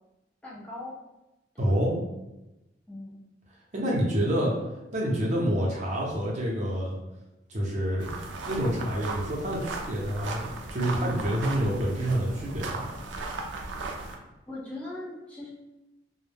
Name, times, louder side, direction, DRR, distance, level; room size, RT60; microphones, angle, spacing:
voice 1, 0.4-1.0 1.5-1.8 2.9-3.2 7.8-7.9 14.5-15.5, left 2 dB, 10° left, -7 dB, 0.5 m, -40 dB
voice 2, 1.6-1.9 3.7-4.5 4.9-7.0 7.5-8.1 8.4-10.4 10.7-12.8, equal, 40° right, -4 dB, 0.7 m, -27 dB
sound 1, 8.0-14.2, right 3 dB, 85° right, 0.4 m, -37 dB
2.2 x 2.1 x 3.3 m, 0.98 s
head